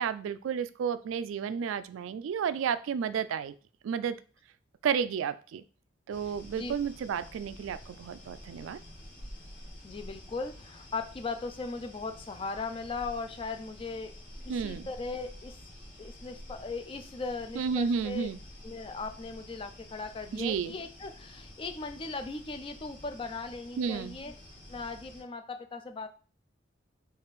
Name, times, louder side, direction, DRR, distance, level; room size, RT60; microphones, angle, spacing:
voice 1, 0.0-3.5 3.8-4.2 4.8-5.6 6.1-8.8 14.5-14.9 17.6-18.4 20.3-20.7 23.8-24.2, right 7 dB, 90° right, 14 dB, 0.3 m, -32 dB
sound 1, 6.1-25.2, left 1 dB, 45° left, 1.6 m, -49 dB
voice 2, 9.8-14.2 14.4-15.6 16.0-18.3 18.6-24.3 24.7-26.1, left 4 dB, 25° left, 7 dB, 0.3 m, -38 dB
3.6 x 2.4 x 4.0 m, 0.37 s
head